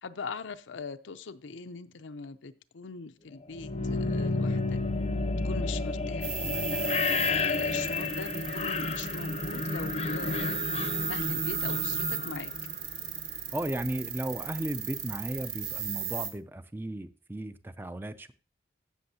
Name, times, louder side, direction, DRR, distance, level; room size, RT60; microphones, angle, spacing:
voice 1, 0.0-4.8 5.4-6.8 7.3-10.6 11.1-12.5, left 5 dB, 85° left, 0.6 m, -41 dB
sound 1, 3.5-13.4, left 3 dB, 35° left, 0.6 m, -31 dB
sound 2, 6.2-16.3, right 8 dB, 60° right, 1.6 m, -36 dB
voice 2, 13.5-18.3, right 1 dB, 10° right, 0.4 m, -35 dB
15.5 x 6.2 x 2.8 m
head